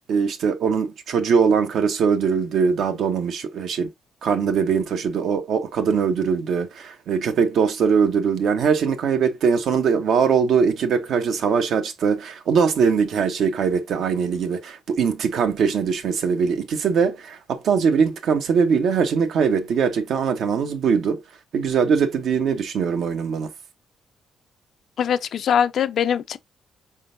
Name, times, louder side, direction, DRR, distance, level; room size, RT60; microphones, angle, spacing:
voice 1, 0.1-3.9 4.2-21.2 21.5-23.5, right 6 dB, 70° right, 0.8 m, -21 dB
voice 2, 25.0-26.4, left 8 dB, 65° left, 0.4 m, -22 dB
4.3 x 3.7 x 2.5 m
cardioid pair, 90°, 0 cm